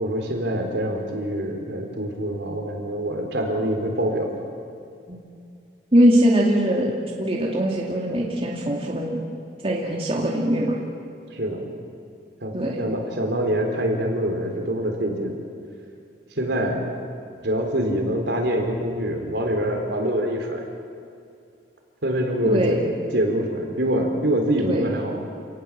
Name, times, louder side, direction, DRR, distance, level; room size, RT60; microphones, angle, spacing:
voice 1, 0.0-4.3 11.3-11.6 12.4-15.4 16.3-16.8 17.4-20.6 22.0-25.2, right 1 dB, 70° right, 2 dB, 4.0 m, -25 dB
voice 2, 5.9-6.9 7.2-9.2 9.6-10.8 12.5-12.8 22.5-22.9 24.6-24.9, equal, 30° right, -2 dB, 2.5 m, -21 dB
29.0 x 18.5 x 7.5 m, 2.5 s
head